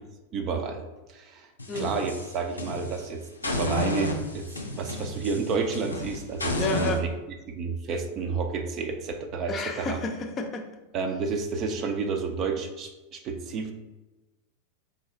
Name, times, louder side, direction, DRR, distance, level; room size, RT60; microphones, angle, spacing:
voice 1, 0.3-1.5 1.7-7.1 7.5-10.0 10.9-13.7, right 4 dB, 35° right, 5 dB, 0.5 m, -30 dB
sound 1, 1.6-3.0 3.4-7.0, left 2 dB, 80° left, 0.5 m, -32 dB
voice 2, 6.6-7.0 9.5-10.7, left 3 dB, 25° left, 4 dB, 0.5 m, -30 dB
3.8 x 2.7 x 4.1 m, 1.1 s
figure-of-eight pair, 90°, 0 cm